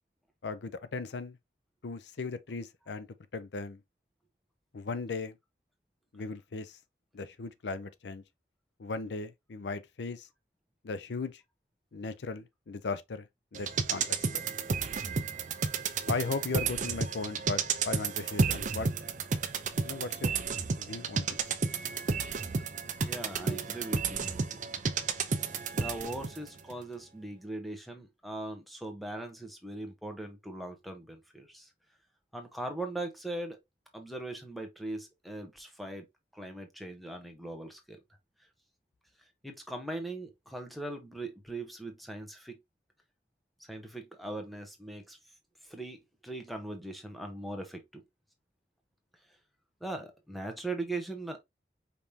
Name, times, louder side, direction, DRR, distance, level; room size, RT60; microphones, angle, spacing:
voice 1, 0.4-1.4 1.8-3.1 3.3-3.8 4.7-5.4 6.1-6.8 7.1-8.2 8.8-10.3 10.8-11.4 11.9-13.3 13.5-14.1 14.3-14.4 16.1-18.9 19.8-20.3 20.8-21.4, left 3 dB, 80° left, 0.5 m, -37 dB
sound 1, 13.5-26.4 26.7-26.8, right 5 dB, 45° right, 0.5 m, -32 dB
voice 2, 23.0-24.6 25.7-31.7 32.3-33.6 33.9-36.0 36.3-38.0 39.4-42.6 43.7-45.2 45.7-48.0 49.8-51.4, right 2 dB, ahead, 0.9 m, -40 dB
5.2 x 3.3 x 2.7 m
head